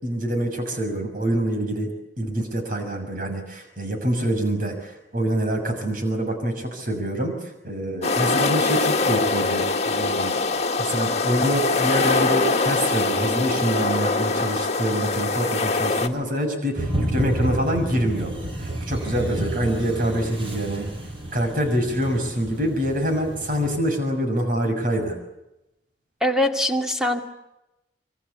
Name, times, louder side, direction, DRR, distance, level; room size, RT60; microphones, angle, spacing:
voice 1, 0.0-10.4 10.8-20.9 21.3-25.2, equal, 50° right, 5 dB, 6.5 m, -25 dB
sound 1, 8.0-16.1, left 3 dB, 35° left, 1.9 m, -23 dB
sound 2, 16.8-23.8, right 1 dB, 30° right, 5.8 m, -30 dB
voice 2, 26.2-27.2, left 1 dB, 5° right, 3 dB, 2.3 m, -22 dB
26.0 x 24.0 x 8.3 m, 0.91 s
head